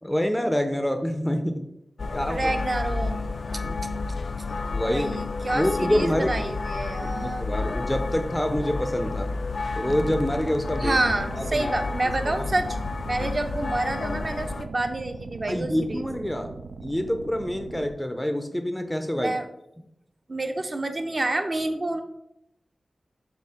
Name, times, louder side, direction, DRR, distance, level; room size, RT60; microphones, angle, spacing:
voice 1, 0.0-1.6 2.1-2.5 3.5-3.8 4.7-5.1 5.5-6.4 7.0-9.3 9.7-11.0 11.4-11.7 13.2-13.3 15.5-16.5 16.8-19.3, equal, 10° left, 6 dB, 0.5 m, -26 dB
sound 1, 2.0-14.7, left 3 dB, 65° left, 0.3 m, -31 dB
voice 2, 2.3-3.2 4.8-7.5 10.8-12.8 13.1-16.1 19.2-19.5 20.3-22.0, right 2 dB, 35° right, 6 dB, 0.6 m, -28 dB
sound 2, 9.9-17.9, right 4 dB, 85° right, 0.3 m, -39 dB
7.1 x 2.4 x 5.5 m, 0.82 s
wide cardioid pair, 110°, 0 cm